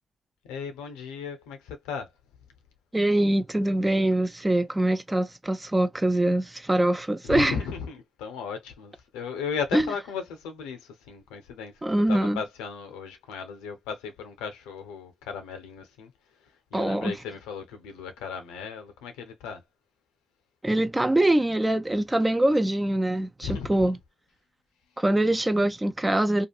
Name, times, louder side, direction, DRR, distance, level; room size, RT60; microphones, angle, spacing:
voice 1, 0.4-2.1 7.3-11.7 12.1-16.1 16.7-19.6 23.4-23.8, left 6 dB, 85° left, 0.6 m, -36 dB
voice 2, 2.9-7.6 9.7-9.9 11.8-12.4 16.7-17.2 20.6-24.0 25.0-26.5, right 1 dB, 20° right, 0.4 m, -23 dB
2.9 x 2.4 x 2.3 m
hypercardioid pair, 45°, 0 cm